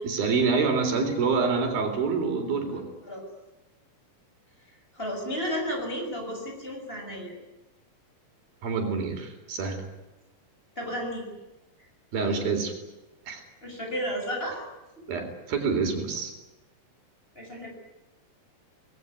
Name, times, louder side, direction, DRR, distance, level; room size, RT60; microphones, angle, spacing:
voice 1, 0.0-2.9 8.6-9.8 12.1-12.7 13.3-13.4 15.1-16.3, right 4 dB, 85° right, 5 dB, 5.7 m, -27 dB
voice 2, 4.9-7.3 10.7-11.3 13.6-14.6 17.3-17.7, equal, 15° left, 2 dB, 6.5 m, -32 dB
26.5 x 20.0 x 9.8 m, 1.0 s
omnidirectional pair, 4.1 m